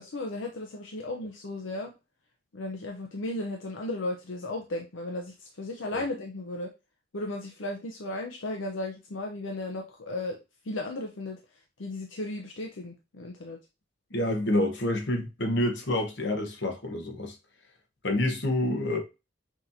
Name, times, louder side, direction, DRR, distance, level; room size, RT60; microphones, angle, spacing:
voice 1, 0.0-1.9 2.5-6.7 7.1-10.4 10.6-13.6, left 2 dB, 85° left, 0.7 m, -35 dB
voice 2, 14.1-17.4 18.0-19.0, left 1 dB, 65° left, 1.1 m, -28 dB
6.1 x 3.0 x 2.6 m
head